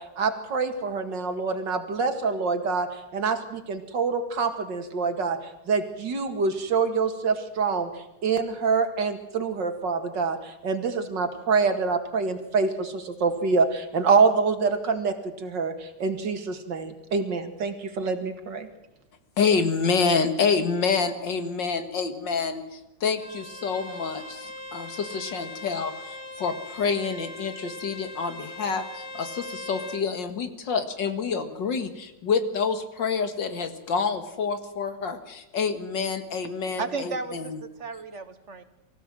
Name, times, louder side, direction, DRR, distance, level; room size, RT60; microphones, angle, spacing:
voice 1, 0.0-5.4 5.7-7.9 8.2-18.7, right 4 dB, 80° right, 2.6 m, -26 dB
voice 2, 19.4-37.6, left 5 dB, 85° left, 2.5 m, -27 dB
Bowed string instrument, 23.1-30.1, left 1 dB, 55° left, 3.2 m, -40 dB
voice 3, 36.8-38.6, right 4 dB, 45° right, 1.5 m, -34 dB
24.5 x 15.5 x 7.7 m
omnidirectional pair, 1.9 m